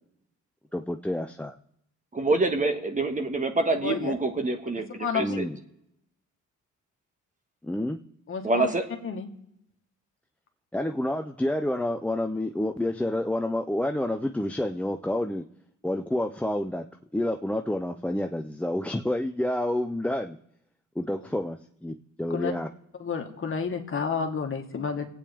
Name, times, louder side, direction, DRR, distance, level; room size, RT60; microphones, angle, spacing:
voice 1, 0.7-1.5 5.2-5.6 7.6-8.0 10.7-15.5 15.8-16.9 17.1-20.4 21.0-22.7, left 1 dB, 5° left, 5 dB, 0.6 m, -29 dB
voice 2, 2.1-5.5 8.4-8.8, right 2 dB, 25° right, 6 dB, 1.7 m, -26 dB
voice 3, 3.8-4.1 5.0-5.4 8.3-8.7 9.0-9.3 22.3-22.5 23.0-25.1, left 6 dB, 45° left, 4 dB, 1.9 m, -30 dB
26.0 x 8.8 x 3.6 m, 0.79 s
cardioid pair, 90°, 30 cm